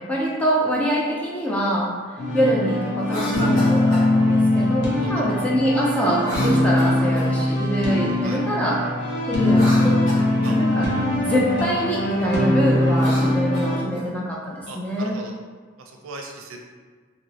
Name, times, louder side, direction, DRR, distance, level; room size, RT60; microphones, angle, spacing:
voice 1, 0.0-1.9 2.3-8.8 9.3-10.9 11.2-15.2, equal, 5° left, -5 dB, 0.4 m, -24 dB
sound 1, 2.2-13.8, left 1 dB, 55° left, 0.7 m, -21 dB
Cough, 3.0-4.1 6.2-7.4 9.4-10.6 12.8-14.1, equal, 70° left, 1.2 m, -32 dB
voice 2, 14.7-15.3 15.8-16.6, right 3 dB, 90° right, 2 dB, 0.5 m, -38 dB
3.0 x 2.9 x 2.8 m, 1.5 s
head